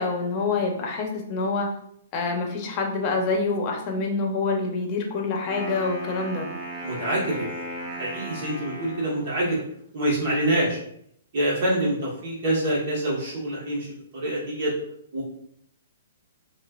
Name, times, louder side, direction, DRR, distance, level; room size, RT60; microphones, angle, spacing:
voice 1, 0.0-1.7 2.1-6.5, left 3 dB, 30° left, 2 dB, 0.8 m, -26 dB
Wind instrument woodwind instrument, 5.4-9.4, equal, 15° right, 0.9 m, -36 dB
voice 2, 6.8-7.5 7.9-9.6 9.9-10.8 11.3-13.9 14.1-14.7 15.1-15.2, right 1 dB, 50° right, -5 dB, 1.4 m, -26 dB
5.3 x 2.5 x 2.5 m, 0.69 s
hypercardioid pair, 150°, 0 cm